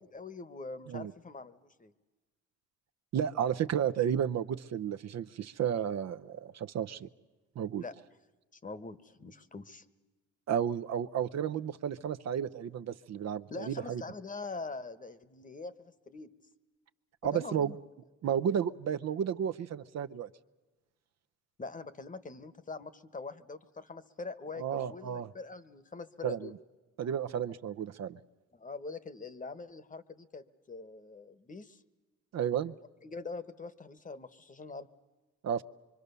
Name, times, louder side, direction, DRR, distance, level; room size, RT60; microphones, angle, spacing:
voice 1, 0.1-1.9 7.8-7.9 8.5-9.9 13.5-16.3 17.2-17.8 21.6-26.5 28.5-31.8 33.0-34.9, left 3 dB, 25° left, 15 dB, 1.2 m, -43 dB
voice 2, 3.1-7.1 7.6-7.8 10.5-14.0 17.2-17.7 18.2-20.3 24.6-25.3 26.2-26.5 27.0-28.2 32.3-32.7 35.4-35.6, right 9 dB, 60° right, 11 dB, 0.8 m, -32 dB
25.0 x 24.0 x 6.8 m, 1.2 s
cardioid pair, 90°, 30 cm